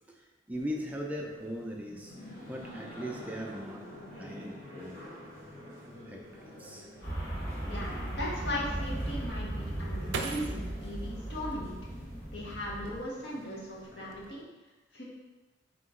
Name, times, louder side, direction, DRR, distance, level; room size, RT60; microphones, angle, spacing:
sound 1, 0.5-14.4, equal, 50° left, 1.3 m, -48 dB
voice 1, 0.5-3.8 4.2-5.0 6.1-6.2 6.6-6.9, equal, 10° right, 0 dB, 0.4 m, -39 dB
sound 2, 7.0-13.0, right 1 dB, 15° left, 1.5 m, -37 dB
voice 2, 7.6-11.8 12.3-14.4 14.9-15.0, left 1 dB, 65° left, -5 dB, 1.0 m, -38 dB
sound 3, 9.1-12.2 12.7-13.5 13.8-14.3, right 4 dB, 80° right, 0.4 m, -41 dB
3.6 x 3.0 x 3.7 m, 1.2 s
head